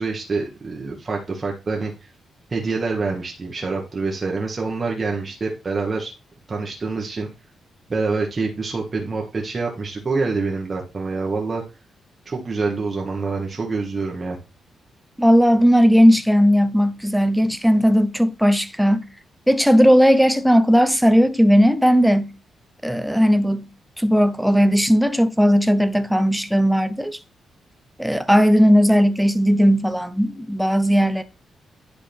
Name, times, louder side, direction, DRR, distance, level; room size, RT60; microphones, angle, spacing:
voice 1, 0.0-1.9 2.5-6.1 6.5-7.3 7.9-11.6 12.2-14.4, right 4 dB, 35° right, 1.4 m, -26 dB
voice 2, 15.2-19.1 19.5-22.3 22.8-23.7 24.0-27.2 28.0-31.2, equal, ahead, 0.7 m, -17 dB
10.0 x 3.8 x 3.5 m
cardioid pair, 105°, 0 cm